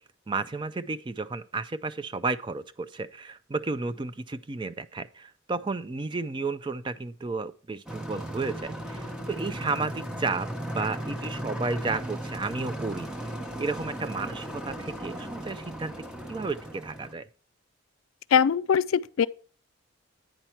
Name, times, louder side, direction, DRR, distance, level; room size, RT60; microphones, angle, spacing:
voice 1, 0.3-13.1 13.6-15.9 16.3-17.3, right 3 dB, 20° right, 0.3 m, -32 dB
sound 1, 7.9-17.1, right 1 dB, 5° right, 0.8 m, -36 dB
voice 2, 18.3-19.3, left 7 dB, 75° left, 0.3 m, -22 dB
9.1 x 5.7 x 4.4 m
head